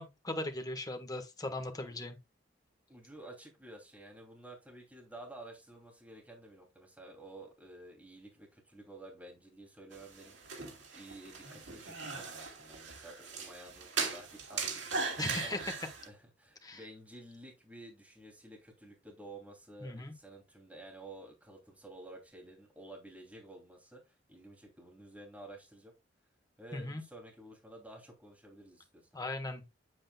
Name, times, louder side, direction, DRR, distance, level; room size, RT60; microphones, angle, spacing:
voice 1, 0.0-2.2 15.2-15.6 16.6-16.8 19.8-20.1 26.7-27.0 29.1-29.6, left 2 dB, 20° left, 1.4 m, -38 dB
voice 2, 2.9-10.6 10.9-15.6 16.0-24.0 24.3-25.9 26.6-29.1, right 1 dB, 10° right, 2.8 m, -52 dB
sound 1, 9.9-16.1, right 4 dB, 75° right, 2.3 m, -39 dB
8.7 x 8.1 x 2.3 m
head